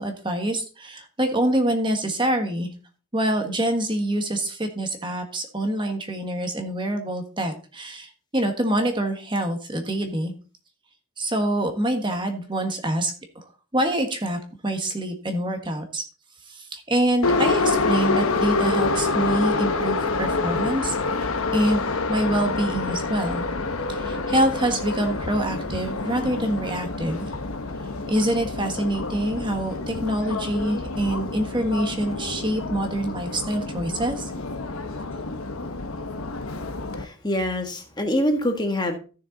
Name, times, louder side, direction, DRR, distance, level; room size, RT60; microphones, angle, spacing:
voice 1, 0.0-2.7 3.1-10.3 11.2-13.4 13.7-16.0 16.5-21.3 21.5-23.4 23.9-27.3 28.1-34.2, right 1 dB, 20° right, 5 dB, 1.5 m, -25 dB
Subway metro underground, 17.2-37.0, left 3 dB, 80° left, 1.1 m, -27 dB
voice 2, 36.9-39.0, left 1 dB, 20° left, 4 dB, 1.6 m, -25 dB
15.0 x 6.5 x 4.0 m, 0.36 s
head